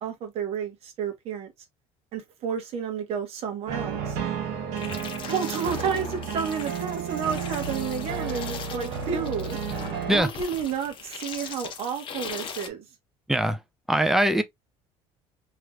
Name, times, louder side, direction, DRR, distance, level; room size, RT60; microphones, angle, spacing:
voice 1, 0.0-1.5 2.1-4.2 5.3-9.6 10.1-12.8, right 7 dB, 55° right, 1.2 m, -31 dB
sound 1, 3.7-10.2, right 6 dB, 75° right, 1.4 m, -32 dB
sound 2, 4.8-12.7, left 6 dB, 45° left, 0.8 m, -39 dB
voice 2, 13.3-13.6 13.9-14.4, right 1 dB, 5° right, 0.6 m, -21 dB
3.1 x 3.0 x 2.4 m
cardioid pair, 110°, 12 cm